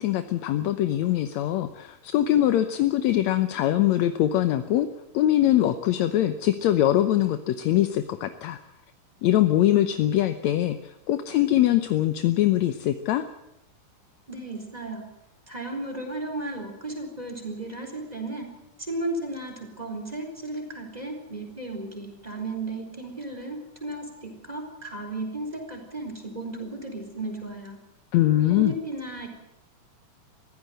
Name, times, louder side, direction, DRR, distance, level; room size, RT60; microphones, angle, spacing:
voice 1, 0.0-4.9 5.1-8.6 9.2-13.3 28.1-28.7, left 13 dB, 70° left, 10 dB, 1.9 m, -22 dB
voice 2, 14.3-15.1 15.5-18.5 18.9-27.8 28.5-29.3, right 2 dB, 10° right, 4 dB, 4.1 m, -34 dB
23.0 x 15.5 x 7.9 m, 0.86 s
omnidirectional pair, 3.8 m